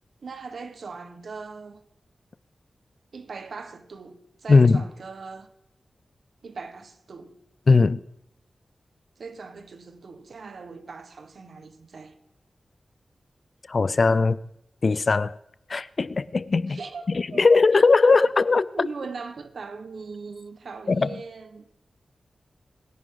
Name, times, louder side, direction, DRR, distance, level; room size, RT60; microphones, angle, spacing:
voice 1, 0.2-1.8 3.1-5.5 6.4-7.4 9.2-12.1 16.7-17.6 18.0-18.3 18.7-21.7, right 4 dB, 75° right, 1.4 m, -40 dB
voice 2, 4.5-4.8 7.7-8.0 13.7-14.4 14.8-15.4 15.7-16.8 17.1-18.9 20.9-21.1, left 4 dB, 50° left, 0.5 m, -19 dB
25.5 x 11.0 x 3.9 m
wide cardioid pair, 120°, 0 cm